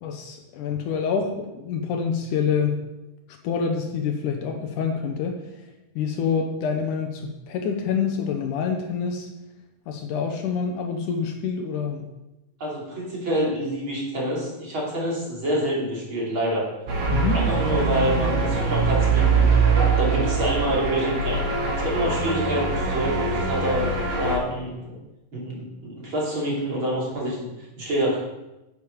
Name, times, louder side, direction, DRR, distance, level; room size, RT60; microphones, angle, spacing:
voice 1, 0.0-2.8 3.4-5.4 6.0-9.3 9.9-12.1 17.1-17.4, left 6 dB, 70° left, 4 dB, 2.3 m, -26 dB
voice 2, 12.6-16.7 17.3-19.5 20.0-21.4 21.7-23.9 24.2-25.0 25.3-27.5 27.8-28.2, right 1 dB, 40° right, -5 dB, 3.4 m, -27 dB
sound 1, 16.9-24.4, right 4 dB, 75° right, 3.8 m, -22 dB
10.5 x 8.1 x 5.2 m, 0.98 s
omnidirectional pair, 3.9 m